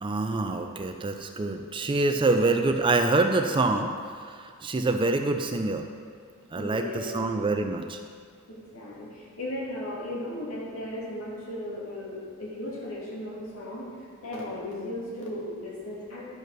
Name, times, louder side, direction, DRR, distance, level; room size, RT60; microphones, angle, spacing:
voice 1, 0.0-3.9 4.3-5.8 6.5-8.0, right 2 dB, 25° right, 6 dB, 0.4 m, -26 dB
voice 2, 6.5-7.2 8.5-13.9 14.2-16.3, left 1 dB, 90° left, -5 dB, 2.6 m, -36 dB
11.0 x 5.3 x 6.3 m, 2.1 s
head